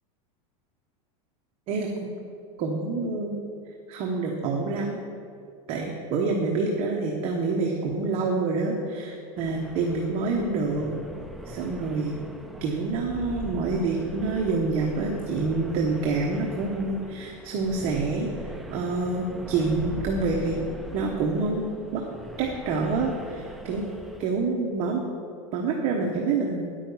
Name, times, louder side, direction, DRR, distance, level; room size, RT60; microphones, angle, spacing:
voice 1, 1.7-2.1 2.6-3.4 3.9-5.0 5.7-10.9 11.5-12.2 12.6-18.3 18.7-20.6 20.9-22.0 22.4-23.8 24.2-25.1 25.5-26.7, right 3 dB, 35° right, 0 dB, 1.0 m, -27 dB
sound 1, 9.4-24.3, right 1 dB, ahead, 0.3 m, -41 dB
9.7 x 8.9 x 5.4 m, 2.5 s
supercardioid pair, 170°, 17 cm